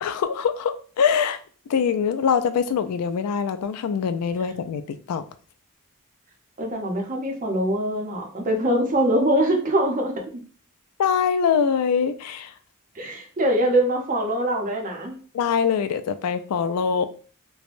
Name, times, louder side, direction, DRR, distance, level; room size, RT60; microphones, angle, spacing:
voice 1, 0.0-1.4 1.7-5.2 11.0-12.5 15.3-17.1, left 6 dB, 85° left, 0.3 m, -23 dB
voice 2, 6.6-10.4 13.0-15.2, right 1 dB, 35° right, 0.7 m, -23 dB
3.3 x 2.1 x 2.4 m
head